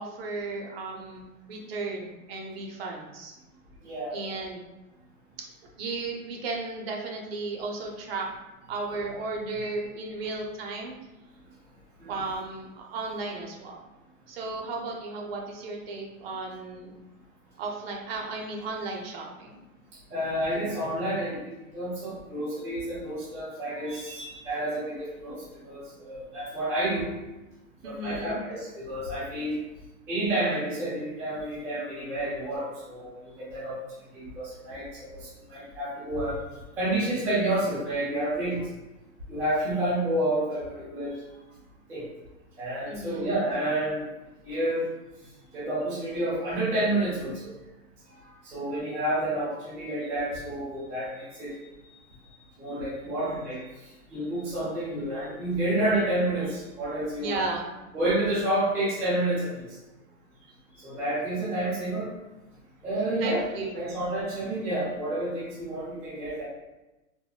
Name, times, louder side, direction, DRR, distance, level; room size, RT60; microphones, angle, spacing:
voice 1, 0.0-3.3 4.1-4.6 5.8-8.2 8.7-10.9 12.1-13.8 14.3-16.9 17.6-19.6 27.8-28.4 42.9-43.3 57.2-57.7 63.2-64.0, right 3 dB, 45° right, 0 dB, 0.6 m, -34 dB
voice 2, 3.8-4.4 12.0-12.1 20.1-27.1 27.8-29.6 30.1-33.8 34.1-36.4 36.8-38.6 39.3-41.2 41.9-42.0 42.6-44.1 44.4-44.8 45.5-47.5 48.1-51.5 52.6-53.6 54.1-57.4 57.9-59.7 60.8-62.1 62.8-63.4 63.7-66.4, right 1 dB, 5° right, -11 dB, 0.4 m, -29 dB
3.6 x 2.1 x 2.2 m, 1.0 s
hypercardioid pair, 145°, 41 cm